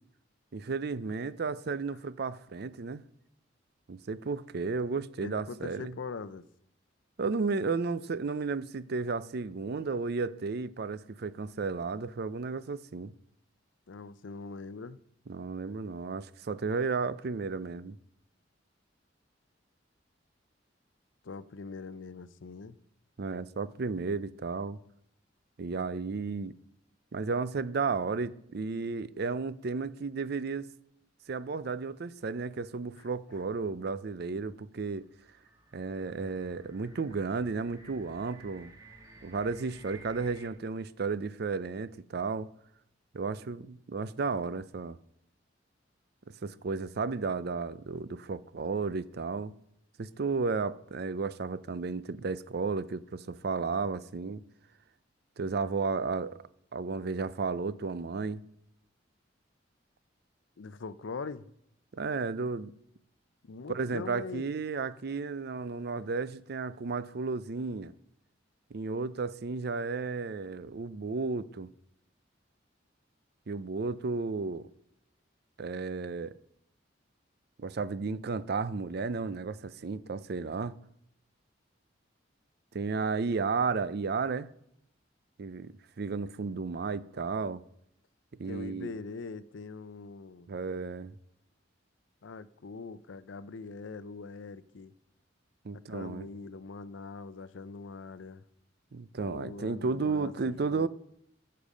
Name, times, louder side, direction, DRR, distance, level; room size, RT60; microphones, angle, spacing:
voice 1, 0.5-3.0 3.9-5.9 7.2-13.1 15.3-18.0 23.2-24.8 25.6-26.5 27.1-30.7 31.3-35.1 35.7-38.7 39.2-42.5 43.1-45.0 46.4-49.5 50.0-54.4 55.4-56.4 56.7-58.4 61.9-62.7 63.7-67.9 68.7-71.7 73.5-74.7 75.6-76.3 77.6-80.7 82.7-84.5 85.4-87.6 88.4-88.9 90.5-91.1 95.6-96.3 98.9-100.9, right 4 dB, 55° right, 0.5 m, -33 dB
voice 2, 5.2-6.4 13.9-15.0 21.2-22.8 33.0-33.1 60.6-61.5 63.4-64.5 88.5-90.5 92.2-94.9 95.7-98.4 99.2-100.9, left 4 dB, 85° left, 0.6 m, -42 dB
sound 1, 34.9-40.5, right 2 dB, 20° right, 1.7 m, -55 dB
13.5 x 6.7 x 5.1 m
head